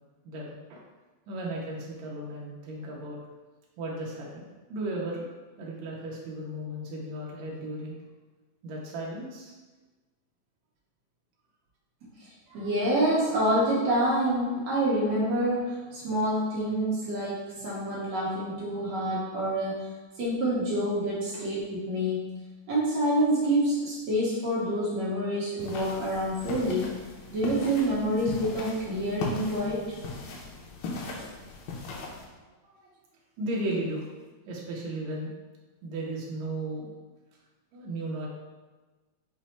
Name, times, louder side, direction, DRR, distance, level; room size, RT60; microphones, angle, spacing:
voice 1, 0.2-0.8 1.3-3.2 3.8-5.3 5.6-7.9 8.6-9.5 21.3-21.4 25.3-25.4 32.8-32.9 33.4-34.0 34.5-35.3 35.8-36.9 37.7-38.3, right 1 dB, 85° right, -3 dB, 1.6 m, -35 dB
voice 2, 12.5-19.9 20.2-22.3 22.7-26.9 27.3-30.0, right 1 dB, 65° right, -8 dB, 1.8 m, -27 dB
sound 1, 25.6-32.3, left 3 dB, 80° left, 2.3 m, -38 dB
6.1 x 2.0 x 4.2 m, 1.2 s
omnidirectional pair, 4.1 m